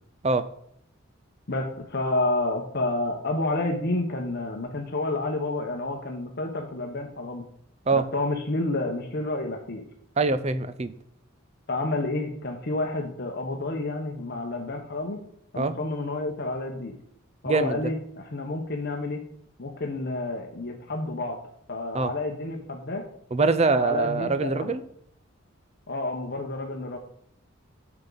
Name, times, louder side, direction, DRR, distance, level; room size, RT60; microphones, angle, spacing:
voice 1, 1.5-7.4 7.9-9.8 11.7-15.2 15.5-16.9 17.4-19.2 19.6-21.4 21.7-23.0 23.7-24.7 25.9-27.0, left 2 dB, 50° left, 2 dB, 1.0 m, -29 dB
voice 2, 10.2-10.9 15.6-15.7 17.4-17.9 21.9-22.1 23.3-24.8, right 3 dB, 30° right, 12 dB, 0.5 m, -24 dB
8.7 x 6.0 x 3.9 m, 0.71 s
head